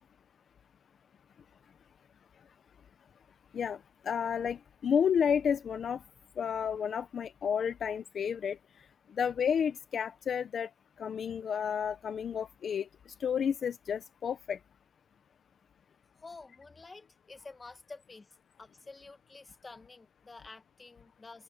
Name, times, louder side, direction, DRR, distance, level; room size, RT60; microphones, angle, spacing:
voice 1, 4.0-6.0 6.4-8.6 9.2-10.7 11.0-12.9 13.2-14.6, left 7 dB, 40° left, 0.8 m, -31 dB
voice 2, 16.2-18.3 18.6-21.4, left 3 dB, 20° left, 1.5 m, -50 dB
cardioid pair, 135°, 0 cm